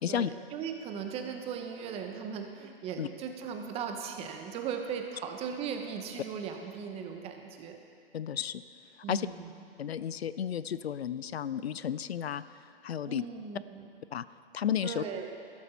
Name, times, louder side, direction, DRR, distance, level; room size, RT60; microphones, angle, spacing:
voice 1, 0.1-7.8 9.0-9.5 13.1-13.9 14.8-15.3, right 7 dB, 20° right, 5 dB, 0.9 m, -38 dB
voice 2, 8.1-8.6 9.1-9.3 9.8-12.4 12.8-13.2 14.1-14.2 14.5-15.0, left 9 dB, 90° left, 16 dB, 0.5 m, -32 dB
13.0 x 12.0 x 4.1 m, 2.4 s
hypercardioid pair, 130°, 31 cm